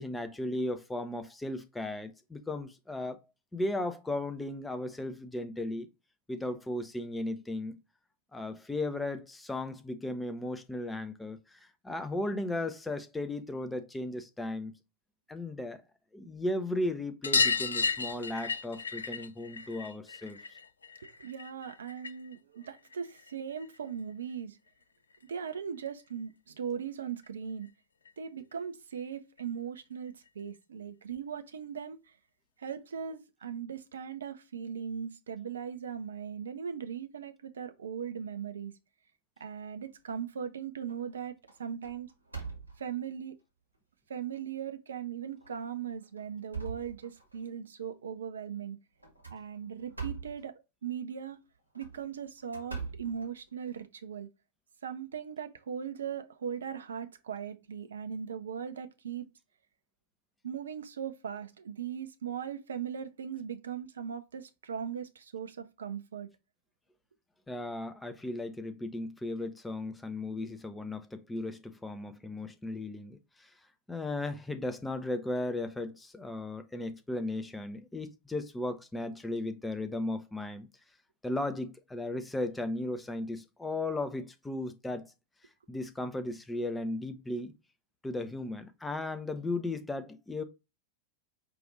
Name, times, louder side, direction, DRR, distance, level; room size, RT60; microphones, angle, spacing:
voice 1, 0.0-3.2 3.5-5.9 6.3-7.7 8.3-14.7 15.3-15.8 16.1-20.4 67.5-73.5 73.9-80.7 81.2-85.1 85.7-87.5 88.0-90.4, left 2 dB, 10° left, 0.6 m, -36 dB
sound 1, 17.2-22.3 22.6-23.8 25.1-25.2 25.4-25.5 25.9-26.0 27.2-27.3 27.6-27.7 28.0-28.1 29.4-29.5 30.3-30.4, left 5 dB, 75° left, 0.4 m, -33 dB
voice 2, 21.2-24.6 25.3-27.7 28.2-32.1 32.6-38.7 39.4-42.1 42.8-43.4 44.1-48.8 49.3-51.4 51.7-54.3 54.8-59.3 60.4-66.3, right 7 dB, 65° right, 0.5 m, -39 dB
sound 2, 39.8-40.4 40.9-41.1 41.5-43.1 43.7-43.8 44.3-44.4 45.3-45.6 46.0-47.5 49.0-50.5 51.6-53.8, right 5 dB, 85° right, 1.1 m, -43 dB
4.8 x 2.5 x 3.6 m
figure-of-eight pair, 90°, 0 cm